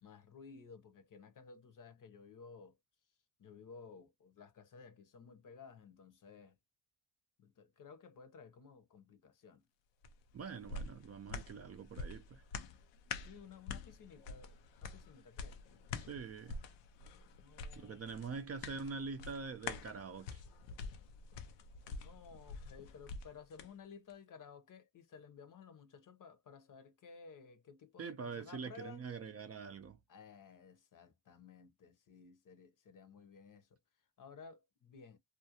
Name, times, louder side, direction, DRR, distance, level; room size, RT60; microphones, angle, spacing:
voice 1, 0.0-2.8 3.4-6.5 7.4-9.6 13.2-14.5 14.8-15.6 17.4-18.2 22.0-29.1 30.1-33.8 34.2-35.2, left 5 dB, 45° left, 0.8 m, -56 dB
sound 1, 10.0-23.7 24.1-24.2, left 4 dB, 85° left, 0.6 m, -47 dB
voice 2, 10.3-12.4 16.0-16.6 17.8-20.4 28.0-30.0, right 5 dB, 35° right, 0.5 m, -44 dB
2.5 x 2.2 x 2.8 m
supercardioid pair, 70°, 43 cm